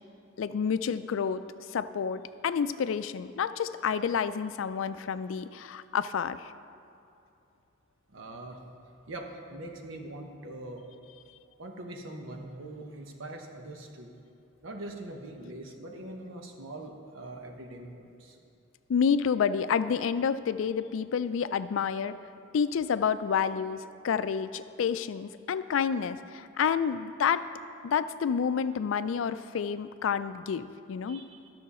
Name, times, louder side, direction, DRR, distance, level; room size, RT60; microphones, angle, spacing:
voice 1, 0.4-1.4 1.7-6.5 18.9-22.1 22.5-27.4 27.8-31.2, left 7 dB, 75° left, 13 dB, 0.4 m, -29 dB
voice 2, 8.1-8.6 9.1-10.8 11.6-14.1 14.6-18.4 31.1-31.5, right 1 dB, 80° right, 3 dB, 1.0 m, -42 dB
12.5 x 6.5 x 4.2 m, 2.6 s
head